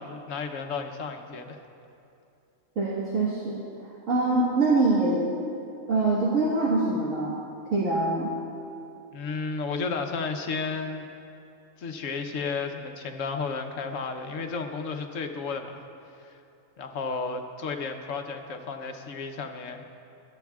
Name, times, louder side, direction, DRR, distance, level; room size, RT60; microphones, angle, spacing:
voice 1, 0.0-1.6 9.1-11.1 11.8-15.8 16.2-16.4 16.8-19.9, left 4 dB, 75° left, 5 dB, 1.2 m, -33 dB
voice 2, 2.8-5.4 5.9-7.3 7.7-8.3, right 2 dB, 80° right, -6 dB, 1.9 m, -24 dB
22.0 x 11.5 x 2.4 m, 2.6 s
omnidirectional pair, 1.4 m